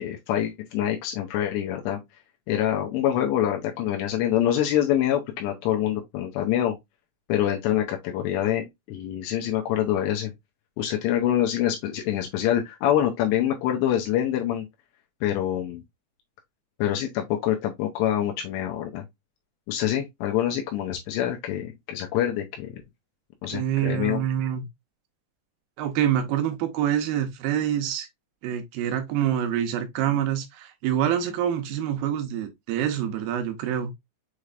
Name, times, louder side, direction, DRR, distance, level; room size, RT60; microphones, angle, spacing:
voice 1, 0.0-2.0 2.5-6.7 7.3-10.3 10.8-14.7 15.2-15.8 16.8-19.0 19.7-22.8 23.4-24.2, left 11 dB, 85° left, 2.9 m, -25 dB
voice 2, 23.5-24.7 25.8-28.1 28.4-33.9, right 10 dB, 75° right, 2.3 m, -26 dB
6.8 x 3.2 x 2.4 m
omnidirectional pair, 4.9 m